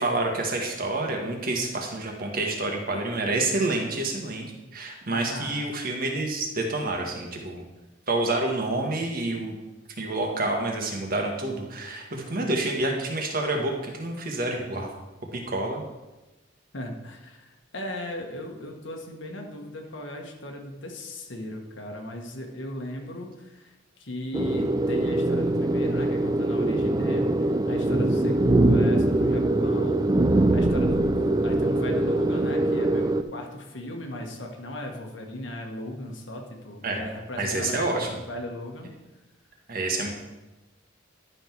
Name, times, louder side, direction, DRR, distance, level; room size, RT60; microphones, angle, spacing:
voice 1, 0.0-7.6 8.1-9.5 10.0-14.9 15.3-15.8 36.8-37.1 37.4-38.2 39.7-40.1, right 2 dB, 50° right, 1 dB, 1.5 m, -28 dB
voice 2, 5.1-5.6 16.7-30.0 30.3-38.9, left 1 dB, 75° left, 2 dB, 1.4 m, -37 dB
sound 1, 24.3-33.2, right 1 dB, 20° right, 0.4 m, -23 dB
11.0 x 5.8 x 4.6 m, 1.1 s
head